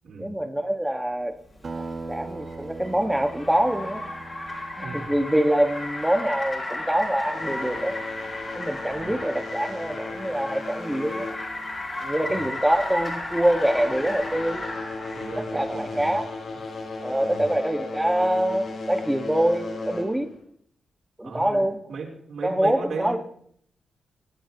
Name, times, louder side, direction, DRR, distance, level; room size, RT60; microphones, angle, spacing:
voice 1, 0.2-1.3 2.1-4.0 4.8-7.9 8.5-11.3 12.0-14.6 15.4-16.4 17.0-20.3 21.2-21.8 22.4-23.2, right 1 dB, 5° right, 6 dB, 1.6 m, -25 dB
Car, 1.6-15.5, left 2 dB, 30° left, 6.8 m, -34 dB
Acoustic guitar, 1.6-6.5, right 3 dB, 45° right, 2.0 m, -40 dB
sound 1, 7.2-12.1 12.4-12.8 13.3-20.4, left 3 dB, 65° left, 3.8 m, -36 dB
voice 2, 15.1-16.1 17.2-17.5 21.2-23.2, right 4 dB, 80° right, -5 dB, 4.1 m, -36 dB
26.0 x 11.0 x 3.0 m, 0.66 s
cardioid pair, 95°, 0 cm